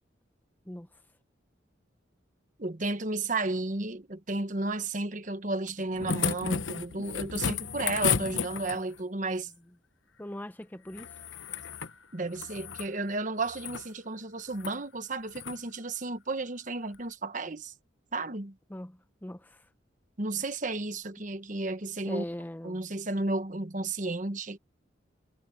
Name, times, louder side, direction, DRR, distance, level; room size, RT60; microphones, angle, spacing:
voice 1, 2.6-9.5 12.1-17.7 18.1-18.5 20.2-22.2 22.6-24.6, right 2 dB, 40° right, 1.2 m, -33 dB
sound 1, 5.7-9.0 10.9-11.9 12.3-12.9 13.4-13.9 14.5-14.8 15.3-15.6 16.9-17.0, left 6 dB, 85° left, 1.0 m, -33 dB
voice 2, 10.2-11.2 18.7-19.7 22.1-22.8, left 1 dB, 10° left, 0.5 m, -40 dB
head